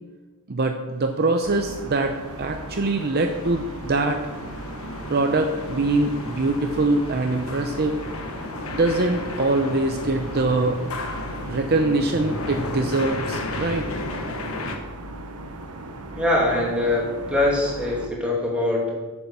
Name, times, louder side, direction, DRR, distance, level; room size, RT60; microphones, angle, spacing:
voice 1, 0.5-4.2 5.1-8.0 8.7-10.9 11.4-13.9, right 2 dB, 45° right, 5 dB, 0.7 m, -23 dB
sound 1, 1.4-18.1, right 1 dB, 90° right, 1.0 m, -38 dB
sound 2, 1.5-14.8, left 2 dB, 70° left, 1.3 m, -34 dB
voice 2, 16.1-18.9, left 1 dB, 5° right, -4 dB, 2.6 m, -23 dB
8.7 x 6.8 x 6.9 m, 1.3 s
head